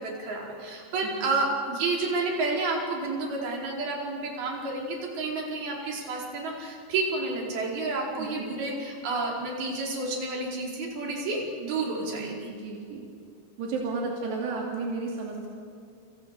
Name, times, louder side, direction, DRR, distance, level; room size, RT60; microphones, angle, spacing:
voice 1, 0.0-12.5, right 3 dB, 65° right, -2 dB, 6.6 m, -30 dB
voice 2, 8.2-8.5 12.1-13.1 13.6-15.5, right 3 dB, 85° right, -2 dB, 4.9 m, -33 dB
29.5 x 28.0 x 6.8 m, 2.4 s
omnidirectional pair, 4.7 m